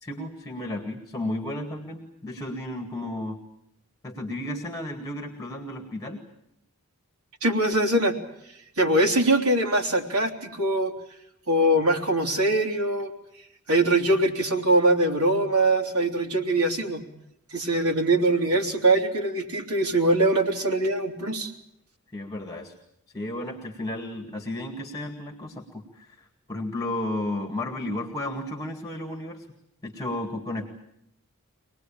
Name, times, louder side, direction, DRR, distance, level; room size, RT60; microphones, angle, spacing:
voice 1, 0.0-3.4 4.0-6.3 22.1-22.7 23.1-29.5 29.8-30.7, left 1 dB, 15° left, 4 dB, 2.0 m, -33 dB
voice 2, 7.4-8.2 8.8-10.9 11.5-13.1 13.7-17.0 17.5-21.5, right 1 dB, 70° right, 3 dB, 3.1 m, -22 dB
25.0 x 19.5 x 8.7 m, 0.80 s
head